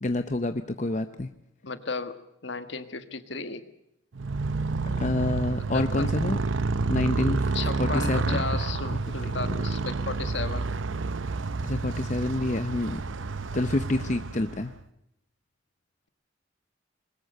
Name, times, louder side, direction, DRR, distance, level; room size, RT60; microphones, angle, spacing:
voice 1, 0.0-1.3 4.9-6.4 6.9-7.5 7.8-8.4 8.9-9.0 9.2-9.3 11.6-13.0 13.5-14.7, left 2 dB, 35° left, 9 dB, 0.7 m, -28 dB
voice 2, 1.6-3.6 5.7-6.1 7.5-10.7, left 4 dB, 65° left, 10 dB, 1.5 m, -34 dB
Motorcycle, 4.1-14.8, right 3 dB, 75° right, 0.7 m, -29 dB
21.5 x 20.5 x 6.8 m, 0.82 s
head